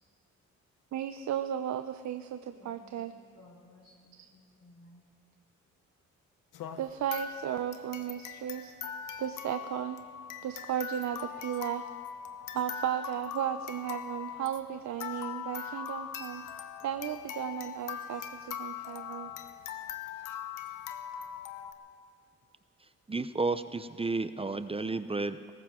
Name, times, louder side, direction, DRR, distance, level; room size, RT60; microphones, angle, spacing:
voice 1, 0.9-3.1 4.2-4.3 6.8-8.7 9.2-10.0 10.4-11.9 12.5-16.4 16.8-19.3, right 10 dB, 60° right, 10 dB, 0.6 m, -35 dB
voice 2, 2.4-5.0, left 1 dB, 45° left, -3 dB, 4.0 m, -58 dB
sound 1, 6.5-21.7, left 8 dB, 80° left, 1.0 m, -41 dB
voice 3, 23.1-25.5, right 3 dB, 20° right, 12 dB, 0.6 m, -32 dB
20.0 x 18.0 x 3.7 m, 2.2 s
cardioid pair, 75°, 31 cm